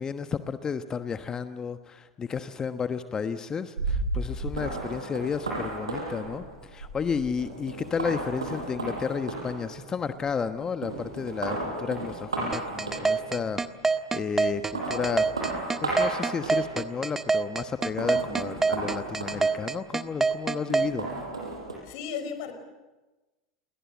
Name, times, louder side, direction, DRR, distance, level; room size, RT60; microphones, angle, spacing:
voice 1, 0.0-13.6 14.1-15.3 15.8-21.1, left 6 dB, 25° left, 9 dB, 1.2 m, -32 dB
sound 1, 3.8-10.5 10.8-13.5 14.4-17.0 17.8-20.0 20.7-21.8, right 2 dB, 85° right, 7.2 m, -34 dB
sound 2, 12.5-20.9, right 4 dB, 15° right, 1.4 m, -25 dB
voice 2, 21.8-22.6, left 6 dB, 60° left, 9 dB, 4.8 m, -34 dB
29.0 x 22.0 x 7.3 m, 1.1 s
hypercardioid pair, 85°, 3 cm